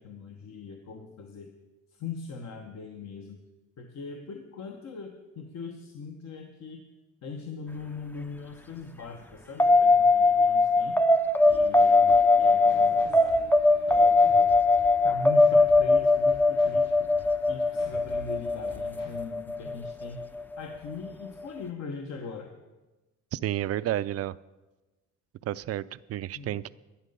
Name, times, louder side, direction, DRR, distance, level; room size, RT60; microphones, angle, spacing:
voice 1, 0.0-1.5 1.9-3.4 3.8-6.9 7.2-11.0 11.5-13.4 13.9-14.6 15.0-20.2 20.6-22.5 26.3-26.6, left 4 dB, 60° left, 3 dB, 1.1 m, -41 dB
sound 1, 9.6-20.4, left 3 dB, 5° left, 0.4 m, -21 dB
sound 2, 11.4-19.2, left 2 dB, 80° left, 4.7 m, -48 dB
voice 2, 23.3-24.4 25.4-26.7, right 13 dB, 55° right, 17 dB, 0.4 m, -31 dB
11.5 x 10.5 x 5.4 m, 1.1 s
cardioid pair, 90°, 30 cm